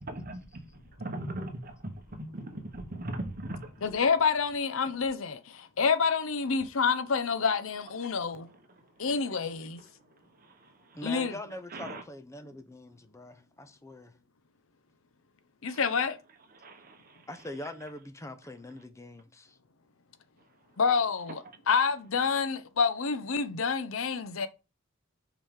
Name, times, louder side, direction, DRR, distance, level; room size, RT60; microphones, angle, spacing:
voice 1, 0.0-3.9 8.5-9.1 9.6-11.1 11.7-12.0 15.7-15.8 16.5-17.3 21.4-21.6, right 1 dB, 45° right, 1.0 m, -41 dB
voice 2, 3.8-8.5 9.0-9.8 11.0-11.3 15.6-16.2 20.8-21.4 21.7-24.5, left 5 dB, 75° left, 0.7 m, -28 dB
voice 3, 10.9-14.1 17.3-19.6, left 1 dB, 15° left, 0.6 m, -43 dB
5.3 x 5.0 x 3.7 m
head